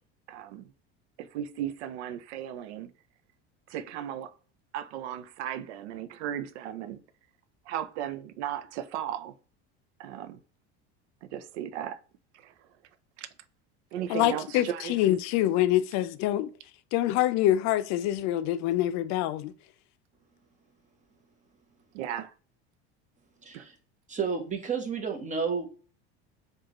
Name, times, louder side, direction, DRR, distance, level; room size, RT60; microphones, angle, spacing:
voice 1, 0.3-0.7 1.2-2.9 3.7-4.3 4.7-7.0 7.7-9.3 10.0-10.4 11.2-12.0 12.3-12.7 13.2-13.3 13.9-15.0 21.9-22.3 23.5-23.7, right 10 dB, 85° right, 0.5 m, -36 dB
voice 2, 14.1-16.5 16.9-19.5, left 13 dB, 55° left, 0.5 m, -25 dB
voice 3, 23.4-23.7 24.1-25.7, right 5 dB, 20° right, 1.0 m, -31 dB
4.7 x 2.5 x 2.9 m
supercardioid pair, 110°, 33 cm